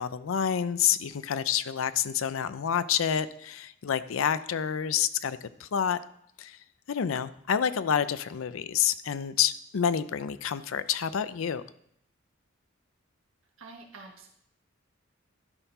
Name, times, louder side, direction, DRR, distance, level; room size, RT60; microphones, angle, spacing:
voice 1, 0.0-6.0 6.4-6.6 6.9-11.6, left 8 dB, 85° left, 14 dB, 0.5 m, -28 dB
voice 2, 13.6-14.3, right 3 dB, 85° right, 1 dB, 1.6 m, -47 dB
12.5 x 4.6 x 5.5 m, 0.71 s
head